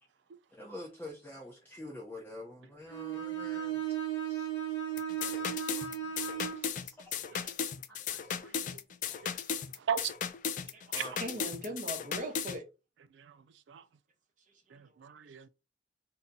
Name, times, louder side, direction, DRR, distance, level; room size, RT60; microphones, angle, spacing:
voice 1, 0.5-3.8 4.3-4.5 5.2-5.5 6.8-7.1 7.9-8.0 9.1-9.2 10.9-11.4, left 1 dB, 10° left, 0.6 m, -46 dB
Bowed string instrument, 2.9-6.7, right 9 dB, 75° left, 1.0 m, -35 dB
sound 1, 5.0-12.6, left 7 dB, 45° left, 0.3 m, -36 dB
voice 2, 8.4-8.8 9.2-9.3 9.9-10.1 11.0-11.1 13.7-13.8 14.7-15.5, right 8 dB, 85° right, 0.4 m, -36 dB
voice 3, 10.7-12.6 14.7-15.0, right 1 dB, 45° right, 0.9 m, -41 dB
2.7 x 2.7 x 3.6 m
head